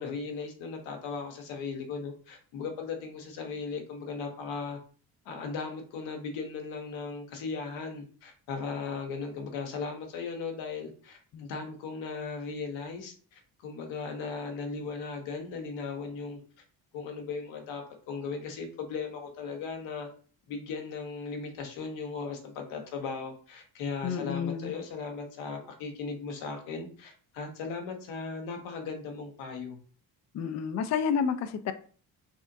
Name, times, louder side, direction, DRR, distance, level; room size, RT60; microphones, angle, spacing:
voice 1, 0.0-4.8 5.2-16.4 16.9-20.1 20.5-29.8, left 5 dB, 85° left, 4 dB, 1.0 m, -37 dB
voice 2, 24.0-24.7 30.3-31.7, left 6 dB, 40° left, 9 dB, 0.4 m, -30 dB
3.5 x 3.5 x 2.6 m, 0.43 s
supercardioid pair, 65°, 45 cm